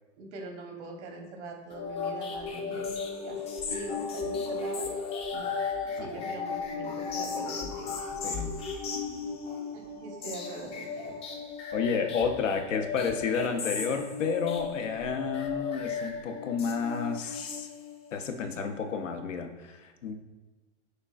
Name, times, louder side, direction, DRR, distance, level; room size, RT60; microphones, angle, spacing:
voice 1, 0.2-2.9 3.2-4.9 5.3-5.5 6.0-8.0 8.3-8.4 9.7-11.1, right 3 dB, 65° right, 2 dB, 1.0 m, -43 dB
sound 1, 1.7-18.1, left 5 dB, 20° left, 0.4 m, -35 dB
voice 2, 6.0-6.3 8.2-8.6 11.7-17.7 18.1-20.1, left 5 dB, 90° left, 6 dB, 0.6 m, -31 dB
6.3 x 2.4 x 2.4 m, 1.2 s
hypercardioid pair, 110°, 36 cm